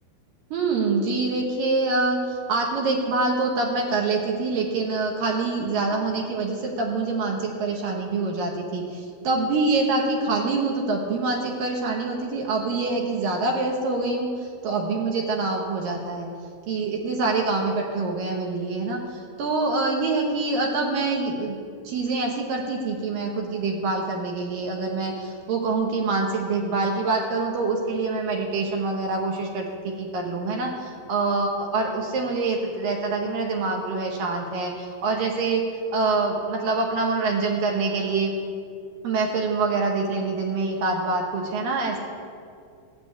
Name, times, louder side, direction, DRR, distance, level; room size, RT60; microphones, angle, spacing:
voice 1, 0.5-16.3 16.7-21.6 21.8-35.6 35.9-38.3 39.0-42.0, right 3 dB, 70° right, 1 dB, 2.3 m, -25 dB
15.0 x 6.8 x 8.3 m, 2.4 s
omnidirectional pair, 5.4 m